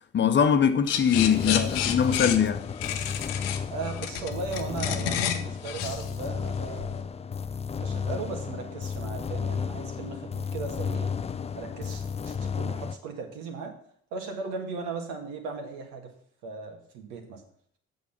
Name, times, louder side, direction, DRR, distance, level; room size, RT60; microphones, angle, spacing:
voice 1, 0.1-2.7, left 7 dB, 35° left, 1.0 m, -22 dB
sound 1, 0.9-7.0, left 9 dB, 75° left, 0.9 m, -31 dB
sound 2, 1.1-13.0, left 6 dB, 20° left, 0.5 m, -33 dB
voice 2, 3.7-7.2 7.8-11.1 11.5-13.7 14.1-16.1 16.4-17.4, right 4 dB, 65° right, 2.0 m, -37 dB
8.3 x 6.5 x 6.0 m
figure-of-eight pair, 50°, 30 cm